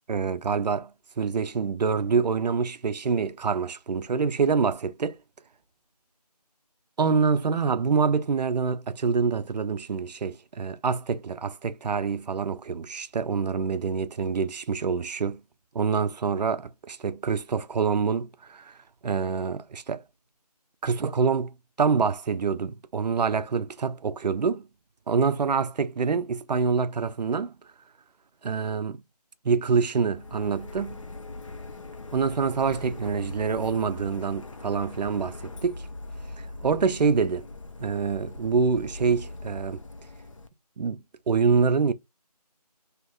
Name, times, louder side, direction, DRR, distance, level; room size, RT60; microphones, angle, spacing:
voice 1, 0.1-0.9 1.2-5.2 7.0-15.4 15.7-18.7 19.0-20.0 20.8-24.7 25.1-27.5 28.4-29.0 29.4-31.0 32.1-35.8 36.6-37.4 37.8-39.8 40.8-41.9, right 5 dB, 80° right, 0.4 m, -26 dB
Printer, 30.1-40.5, left 2 dB, 50° left, 0.4 m, -41 dB
2.8 x 2.4 x 2.3 m
figure-of-eight pair, 170°, 21 cm